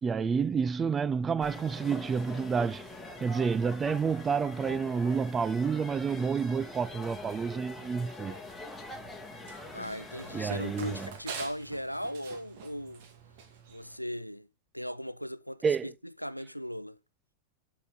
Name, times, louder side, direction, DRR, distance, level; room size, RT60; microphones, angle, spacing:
voice 1, 0.0-2.9 3.2-8.4 10.3-11.1 15.6-15.9, right 6 dB, 20° right, 0.3 m, -29 dB
Jemaa el Fna, 1.4-11.1, left 2 dB, 5° left, 2.3 m, -44 dB
Run, 8.8-14.0, right 6 dB, 50° right, 2.3 m, -46 dB
voice 2, 9.7-13.0 13.7-14.5 14.7-15.9 16.2-17.0, equal, 90° left, 0.4 m, -38 dB
10.5 x 4.9 x 3.9 m
figure-of-eight pair, 90°, 0 cm